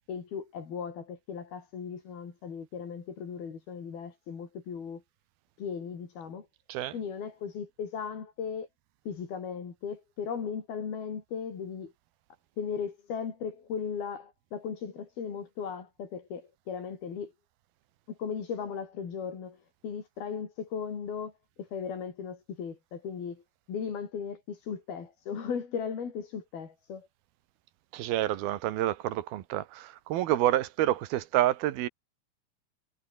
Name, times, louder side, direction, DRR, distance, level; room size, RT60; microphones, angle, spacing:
voice 1, 0.1-5.0 5.6-6.5 6.9-8.7 9.1-11.9 12.6-17.3 18.1-21.3 21.6-23.4 23.7-27.1, left 6 dB, 80° left, 6.0 m, -37 dB
voice 2, 27.9-31.9, right 14 dB, 85° right, 3.2 m, -28 dB
omnidirectional pair, 4.3 m